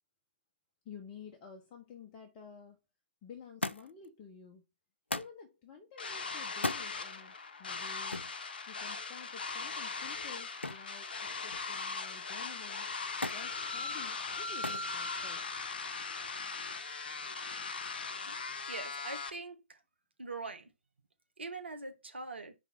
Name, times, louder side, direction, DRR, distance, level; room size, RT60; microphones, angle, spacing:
voice 1, 0.8-2.8 3.2-4.6 5.1-8.2 8.7-12.9 13.3-15.5, left 6 dB, 25° left, 1.1 m, -51 dB
Thump thud, 3.6-4.1 5.1-5.4 6.5-6.9 8.1-8.4 10.6-10.9 11.3-11.9 13.2-13.5 14.6-14.9 15.8-16.3 17.3-17.4, left 2 dB, 90° left, 0.5 m, -37 dB
sound 1, 6.0-19.3, left 4 dB, 55° left, 1.1 m, -39 dB
voice 2, 18.7-19.8 20.2-20.7 21.4-22.5, right 3 dB, 75° right, 1.5 m, -43 dB
5.3 x 4.1 x 4.6 m
figure-of-eight pair, 130°, 6 cm